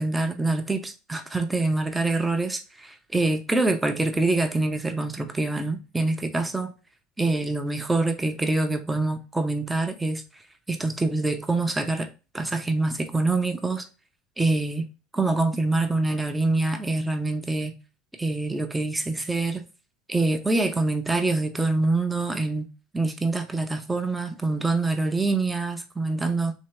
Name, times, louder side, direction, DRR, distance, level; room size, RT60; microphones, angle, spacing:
voice 1, 0.0-6.7 7.2-10.2 10.7-12.1 12.3-13.9 14.4-14.9 15.1-17.8 18.2-19.6 20.1-22.7 22.9-26.5, right 2 dB, 10° right, 0.7 m, -25 dB
3.7 x 2.8 x 3.2 m
hypercardioid pair, 80°, 0 cm